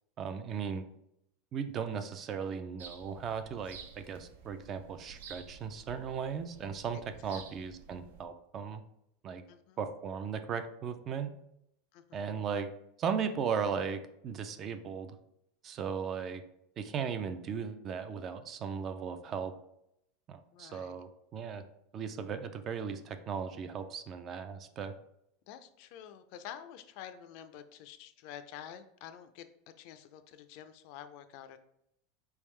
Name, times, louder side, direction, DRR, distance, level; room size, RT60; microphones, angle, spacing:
voice 1, 0.2-0.8 1.5-8.8 9.2-9.4 9.8-11.3 12.1-12.7 13.0-15.2 15.6-16.4 16.8-19.5 20.3-21.6 21.9-24.9, right 6 dB, 30° right, 10 dB, 0.3 m, -37 dB
sound 1, 2.8-8.2, right 6 dB, 85° right, 0.6 m, -52 dB
voice 2, 9.5-9.8 11.9-12.4 20.5-21.0 25.5-29.5 29.8-31.6, left 10 dB, 50° left, 10 dB, 0.4 m, -49 dB
4.4 x 3.5 x 3.2 m, 0.79 s
supercardioid pair, 160°, 0 cm